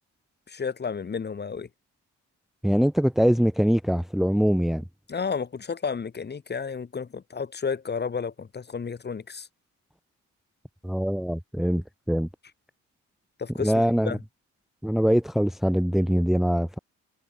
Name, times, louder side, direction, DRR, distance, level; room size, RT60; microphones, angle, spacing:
voice 1, 0.5-1.7 5.1-9.5 13.4-14.2, left 5 dB, 35° left, 2.2 m, -32 dB
voice 2, 2.6-4.8 10.8-12.3 13.6-14.2 14.8-16.8, equal, ahead, 1.0 m, -23 dB
cardioid pair, 90°, 30 cm